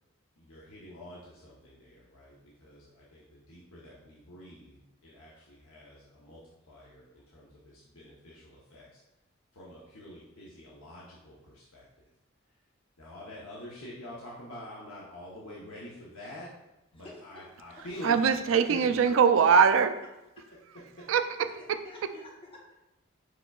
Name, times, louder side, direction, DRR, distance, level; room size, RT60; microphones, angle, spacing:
voice 1, 0.4-9.0 9.5-12.1 12.5-12.6 13.0-16.5 16.9-19.2 21.0-21.1, equal, 80° left, -6 dB, 0.8 m, -47 dB
voice 2, 16.9-17.4 17.8-17.9 20.4-20.5 21.5-22.7, left 1 dB, 25° left, -2 dB, 0.7 m, -51 dB
voice 3, 18.0-19.9 21.1-21.8, right 6 dB, 70° right, 9 dB, 0.3 m, -22 dB
4.9 x 4.4 x 2.3 m, 0.93 s
head